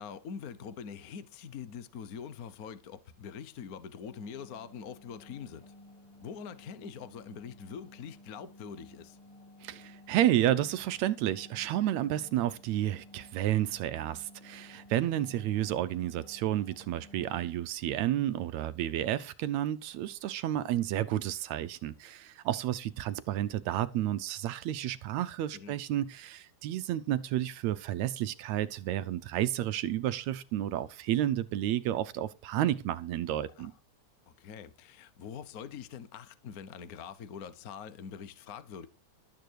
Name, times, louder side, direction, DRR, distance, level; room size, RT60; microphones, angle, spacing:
voice 1, 0.0-5.7 6.2-9.2 25.5-25.8 33.6-33.7 34.3-38.9, left 7 dB, 85° left, 0.8 m, -44 dB
sound 1, 4.1-17.6, left 1 dB, 50° left, 2.8 m, -55 dB
voice 2, 9.6-33.7, right 12 dB, 75° right, 1.9 m, -31 dB
13.0 x 8.9 x 4.8 m
omnidirectional pair, 3.4 m